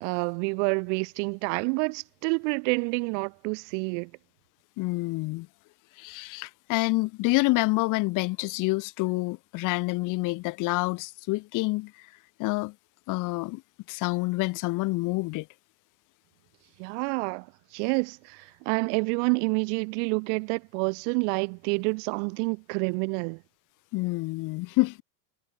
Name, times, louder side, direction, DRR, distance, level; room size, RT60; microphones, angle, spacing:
voice 1, 0.0-4.1 16.8-17.5 17.7-23.4, right 40 dB or more, 45° right, 1.1 m, -28 dB
voice 2, 4.8-5.5 6.0-12.1 12.4-12.7 13.1-13.6 13.9-15.5 23.9-25.0, left 22 dB, 40° left, 1.4 m, -27 dB
supercardioid pair, 135°, 50 cm